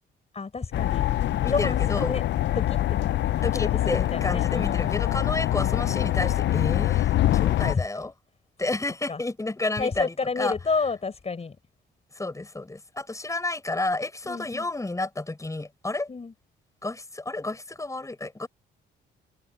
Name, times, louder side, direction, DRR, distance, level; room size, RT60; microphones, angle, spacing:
voice 1, 0.3-1.1 1.5-2.2 2.5-3.1 3.4-5.0 7.7-7.9 9.1-9.2 9.8-11.5 14.2-14.7 16.1-16.3, left 4 dB, 30° left, 5.1 m, -30 dB
sound 1, 0.7-7.8, left 13 dB, 65° left, 0.6 m, -24 dB
voice 2, 1.4-2.2 3.4-8.1 8.6-10.5 12.1-16.1 16.8-18.5, left 2 dB, 15° left, 6.7 m, -31 dB
cardioid pair, 90°, 20 cm